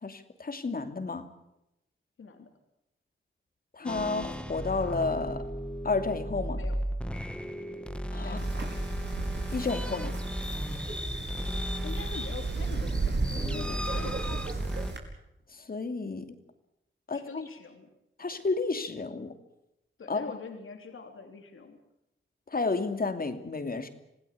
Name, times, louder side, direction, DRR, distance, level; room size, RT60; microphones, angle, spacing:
voice 1, 0.0-1.3 3.7-5.5 5.8-6.6 8.1-8.4 9.5-10.2 15.5-16.4 17.1-17.4 18.2-19.3 20.1-20.4 22.5-23.9, left 3 dB, 45° left, 8 dB, 2.8 m, -31 dB
voice 2, 2.2-2.5 6.5-6.8 8.2-8.4 11.8-14.6 17.1-17.9 20.0-21.8, left 4 dB, 70° left, 5 dB, 3.5 m, -44 dB
sound 1, 3.8-14.9, equal, 5° left, 1.8 m, -35 dB
Wind, 8.4-15.0, right 3 dB, 55° right, 5.3 m, -34 dB
27.0 x 17.5 x 8.6 m, 0.85 s
wide cardioid pair, 95°, 21 cm